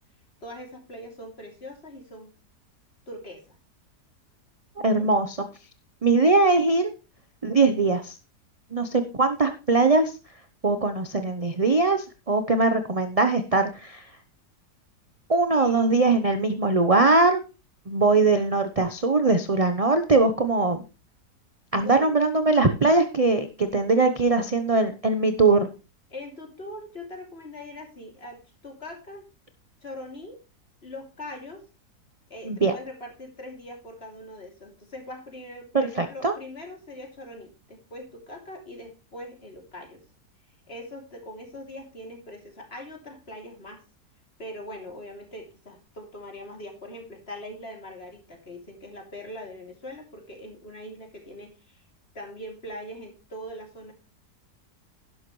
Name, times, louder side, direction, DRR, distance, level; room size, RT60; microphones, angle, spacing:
voice 1, 0.4-2.3 3.1-3.4 4.8-5.1 15.5-15.9 21.7-22.2 26.1-29.2 29.8-30.4 30.8-31.6 32.3-40.0 40.7-43.8 44.4-51.8 52.1-53.9, left 1 dB, 35° left, 2 dB, 3.3 m, -41 dB
voice 2, 4.8-5.5 6.0-6.9 7.4-8.2 8.7-10.1 10.6-14.0 15.3-17.4 17.9-20.8 21.7-25.7 32.5-32.7 35.7-36.3, right 3 dB, 30° right, 8 dB, 0.8 m, -21 dB
11.5 x 11.5 x 3.2 m, 0.30 s
omnidirectional pair, 1.7 m